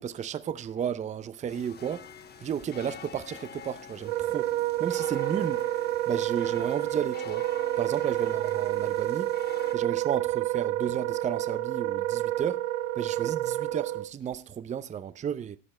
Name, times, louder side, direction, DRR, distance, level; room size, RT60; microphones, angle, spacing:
voice 1, 0.0-2.1 2.4-4.5 4.8-5.6 6.1-7.5 7.8-9.3 9.7-12.6 13.0-15.6, right 8 dB, 20° right, 0.6 m, -33 dB
sound 1, 1.5-9.7, left 7 dB, 25° left, 1.0 m, -47 dB
Wind instrument woodwind instrument, 4.0-14.1, right 14 dB, 80° right, 0.7 m, -29 dB
13.5 x 8.7 x 4.3 m
supercardioid pair, 120°, 40 cm